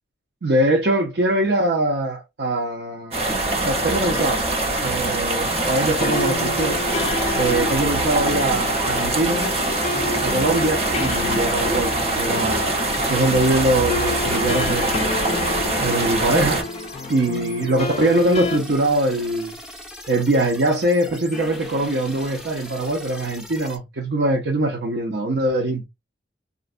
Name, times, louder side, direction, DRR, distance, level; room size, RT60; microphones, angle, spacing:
voice 1, 0.4-3.2 3.6-4.4 4.8-6.8 7.4-9.5 10.2-12.8 13.1-15.0 15.8-16.7 17.1-19.5 20.1-25.8, right 1 dB, 70° right, 0.6 m, -22 dB
sound 1, 3.1-16.6, right 2 dB, 35° right, 0.9 m, -23 dB
sound 2, 5.4-23.8, left 1 dB, 5° right, 0.6 m, -40 dB
sound 3, 5.5-18.6, left 3 dB, 35° left, 0.3 m, -30 dB
3.8 x 2.2 x 2.4 m
head